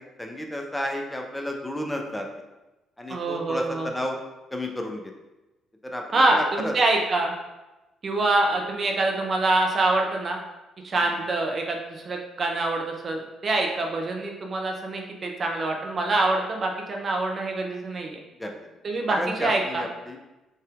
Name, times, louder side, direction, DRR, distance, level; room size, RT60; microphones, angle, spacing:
voice 1, 0.2-2.3 3.0-4.2 4.5-5.1 5.9-6.7 18.4-18.6 19.1-20.2, left 1 dB, 10° left, 2 dB, 0.6 m, -32 dB
voice 2, 3.1-3.9 6.1-7.3 8.0-10.4 10.8-18.2 18.8-19.8, right 2 dB, 40° right, 1 dB, 0.5 m, -25 dB
4.0 x 3.8 x 2.4 m, 1.0 s
figure-of-eight pair, 45°, 0 cm